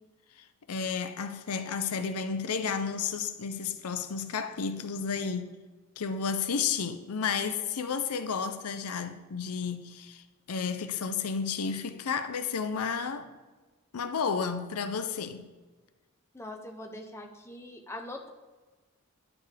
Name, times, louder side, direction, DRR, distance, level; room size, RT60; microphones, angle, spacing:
voice 1, 0.7-5.5 6.0-13.3 13.9-15.5, left 6 dB, 75° left, 0.6 m, -32 dB
voice 2, 16.3-18.3, left 1 dB, 10° left, 0.7 m, -42 dB
10.5 x 6.9 x 3.3 m
head